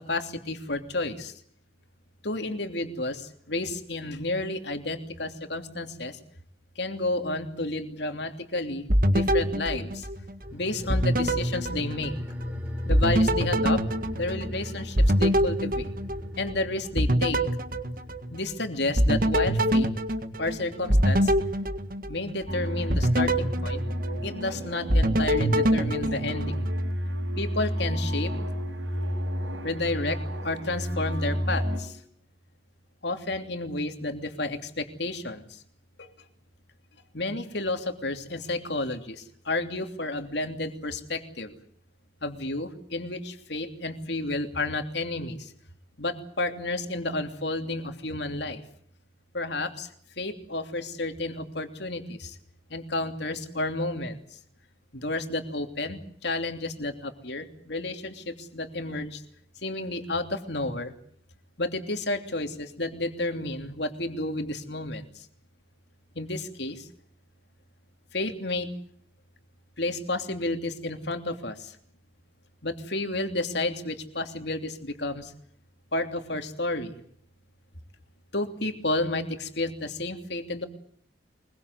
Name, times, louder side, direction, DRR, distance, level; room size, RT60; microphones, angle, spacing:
voice 1, 0.1-1.3 2.2-3.2 3.5-6.1 6.8-9.9 10.5-12.1 12.9-13.8 14.2-15.8 16.4-17.4 18.3-19.9 20.4-21.2 22.1-23.8 24.2-26.5 27.4-28.3 29.6-30.2 30.4-31.6 33.0-35.4 37.1-39.1 39.5-41.5 42.2-45.4 46.0-48.6 49.3-49.9 50.2-52.2 52.7-54.1 55.0-58.1 58.5-59.1 59.6-60.9 61.6-65.0 66.2-66.7 68.1-68.7 69.8-71.5 72.6-75.2 75.9-76.9 78.3-80.7, left 2 dB, 60° left, 7 dB, 3.0 m, -31 dB
sound 1, 8.9-10.5 10.9-12.5 12.9-16.6 17.0-18.6 19.0-22.4 22.9-24.5 24.9-26.9, equal, 45° right, 1.8 m, -25 dB
sound 2, 10.4-21.3 21.6-21.7, left 1 dB, 10° right, 3.9 m, -40 dB
sound 3, 22.5-31.8, equal, 80° right, 7.0 m, -31 dB
23.5 x 22.5 x 8.2 m, 0.63 s
head